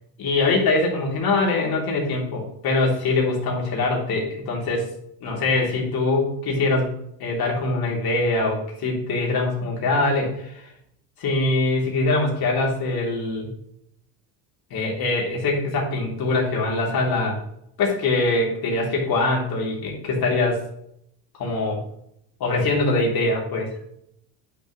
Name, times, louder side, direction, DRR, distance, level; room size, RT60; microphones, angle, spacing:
voice 1, 0.2-4.9 5.2-6.9 7.2-10.6 11.2-13.5 14.7-17.4 17.8-20.6 21.4-21.8 22.4-23.7, left 2 dB, 45° left, -1 dB, 3.5 m, -23 dB
9.8 x 6.6 x 3.2 m, 0.74 s
supercardioid pair, 110°, 49 cm